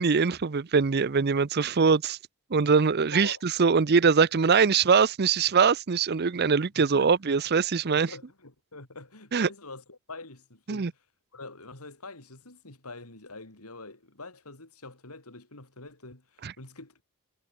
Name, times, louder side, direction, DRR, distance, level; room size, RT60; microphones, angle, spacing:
voice 1, 0.0-2.2 2.5-8.1 9.3-9.5 10.7-10.9 16.4-16.5, right 5 dB, 45° right, 0.6 m, -23 dB
voice 2, 3.1-3.4 6.8-7.1 7.8-11.0 11.3-17.0, left 3 dB, 85° left, 4.6 m, -45 dB
head